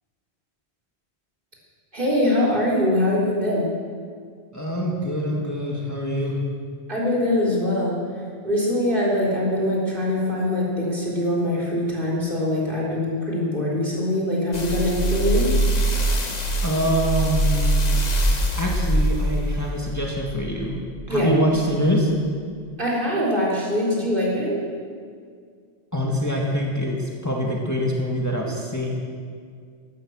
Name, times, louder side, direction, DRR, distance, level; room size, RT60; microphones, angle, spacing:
voice 1, 1.9-3.7 6.9-8.0 8.4-15.5 21.1-21.3 22.8-24.6, left 1 dB, 50° right, -4 dB, 4.2 m, -23 dB
voice 2, 4.5-6.4 16.6-18.0 18.6-20.8 21.1-22.1 25.9-28.9, equal, 15° left, -2 dB, 2.0 m, -24 dB
sound 1, 14.5-21.0 21.6-21.7, right 1 dB, 40° left, 1.4 m, -23 dB
16.0 x 13.0 x 6.5 m, 2.1 s
omnidirectional pair, 1.1 m